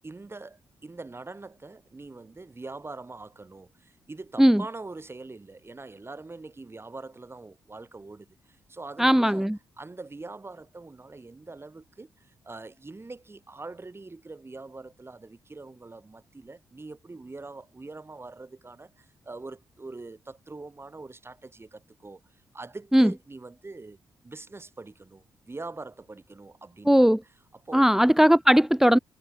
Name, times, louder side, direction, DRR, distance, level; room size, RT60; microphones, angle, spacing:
voice 1, 0.0-9.5 9.8-22.2 22.5-24.0 24.2-27.0 27.5-27.9, right 3 dB, 30° right, 6.1 m, -43 dB
voice 2, 9.0-9.6 22.9-23.1 26.9-27.2 27.7-29.0, equal, 5° right, 0.7 m, -18 dB
hypercardioid pair, 40°, 8 cm